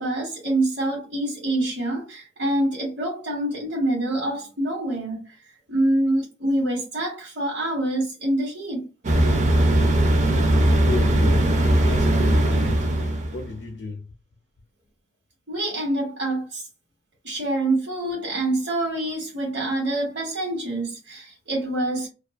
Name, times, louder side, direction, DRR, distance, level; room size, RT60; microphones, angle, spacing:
voice 1, 0.0-8.9 15.5-16.6 17.2-22.1, right 1 dB, 70° right, 1.1 m, -26 dB
sound 1, 9.0-13.5, right 1 dB, 40° right, 0.5 m, -19 dB
voice 2, 10.8-14.1, left 3 dB, 90° left, 0.5 m, -34 dB
2.3 x 2.3 x 2.4 m
head